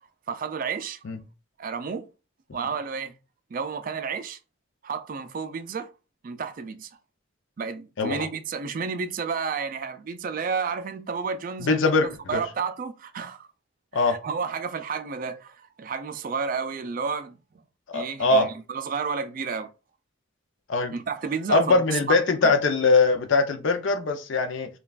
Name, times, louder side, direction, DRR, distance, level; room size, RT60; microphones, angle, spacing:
voice 1, 0.3-1.0 1.6-2.1 2.5-3.1 3.5-4.4 4.8-5.9 6.2-6.9 7.6-13.5 13.9-17.4 17.9-19.7 20.9-22.0 22.4-22.5, right 5 dB, 40° right, 0.3 m, -31 dB
voice 2, 11.6-12.4 13.9-14.2 17.9-18.5 20.7-20.9 21.5-24.7, left 3 dB, 65° left, 0.5 m, -22 dB
5.3 x 2.3 x 2.3 m
head